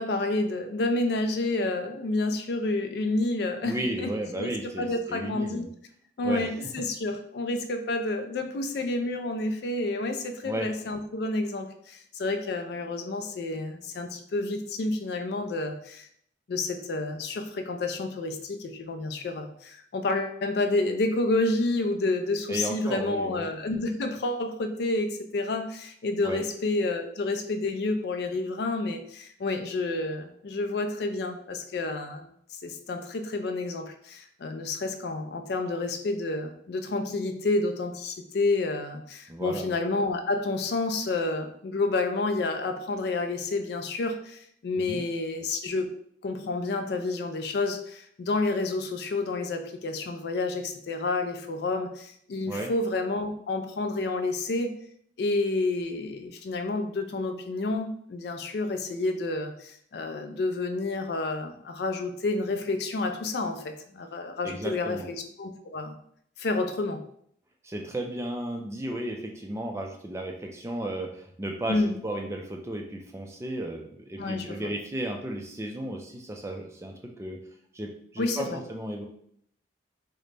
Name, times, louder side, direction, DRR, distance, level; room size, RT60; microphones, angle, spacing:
voice 1, 0.0-4.5 4.8-5.7 6.2-16.1 16.5-45.9 46.2-54.7 55.2-66.0 66.4-67.0 71.7-72.0 74.2-74.7 78.2-78.6, left 2 dB, 60° left, 6 dB, 0.3 m, -29 dB
voice 2, 3.6-5.7 6.2-6.5 10.4-10.7 22.5-23.5 26.2-26.4 39.3-39.7 44.8-45.0 52.4-52.7 64.4-65.1 67.6-77.4 77.7-79.0, right 1 dB, 15° right, 2 dB, 0.3 m, -34 dB
3.7 x 2.1 x 3.3 m, 0.67 s
head